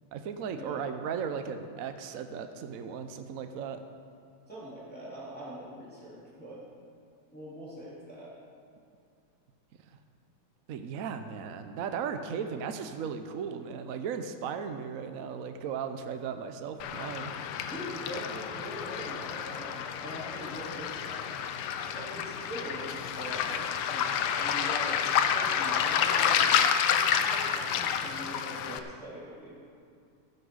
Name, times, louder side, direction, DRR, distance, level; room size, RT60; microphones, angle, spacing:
voice 1, 0.1-3.8 10.7-17.3, right 7 dB, 70° right, 8 dB, 0.7 m, -36 dB
voice 2, 4.5-6.7 7.3-8.3 17.7-21.3 21.9-25.0 25.3-29.6, right 1 dB, 5° left, -9 dB, 3.3 m, -43 dB
Waves surf, 16.8-28.8, left 8 dB, 85° left, 1.6 m, -29 dB
14.5 x 7.6 x 6.3 m, 2.4 s
omnidirectional pair, 2.4 m